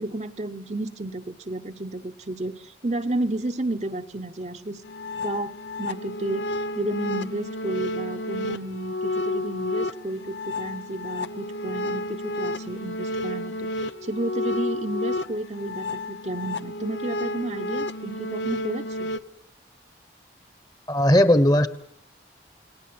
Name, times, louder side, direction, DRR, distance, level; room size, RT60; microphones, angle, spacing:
voice 1, 0.0-4.8 5.2-6.5 6.7-19.1, right 2 dB, 40° right, 6 dB, 1.0 m, -32 dB
sound 1, 4.8-19.2, left 1 dB, 80° left, 0.9 m, -31 dB
voice 2, 20.9-21.7, left 1 dB, 20° left, 13 dB, 1.2 m, -17 dB
29.5 x 18.5 x 7.9 m, 0.73 s
head